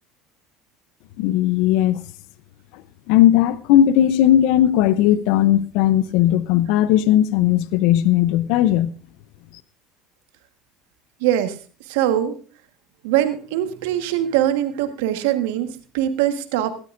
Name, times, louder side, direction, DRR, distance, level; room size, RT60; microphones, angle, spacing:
voice 1, 1.2-2.0 3.1-8.9, left 12 dB, 70° left, 0.6 m, -17 dB
voice 2, 11.2-11.5 11.9-12.3 13.0-16.7, right 12 dB, 80° right, 1.4 m, -22 dB
16.5 x 13.5 x 2.6 m
hypercardioid pair, 85°, 0 cm